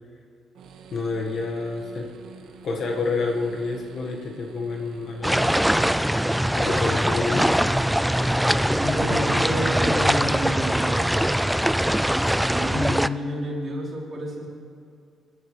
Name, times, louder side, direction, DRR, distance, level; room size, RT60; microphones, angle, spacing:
sound 1, 0.5-12.5, right 7 dB, 75° right, 1.1 m, -48 dB
voice 1, 0.9-2.1 2.6-5.6 6.6-7.8, left 3 dB, 60° left, 1 dB, 1.6 m, -28 dB
sound 2, 5.2-13.1, equal, 5° right, 0.3 m, -22 dB
voice 2, 8.7-11.2 12.5-14.5, equal, 45° right, -4 dB, 3.7 m, -29 dB
22.0 x 11.0 x 3.3 m, 2.4 s
cardioid pair, 90°, 0 cm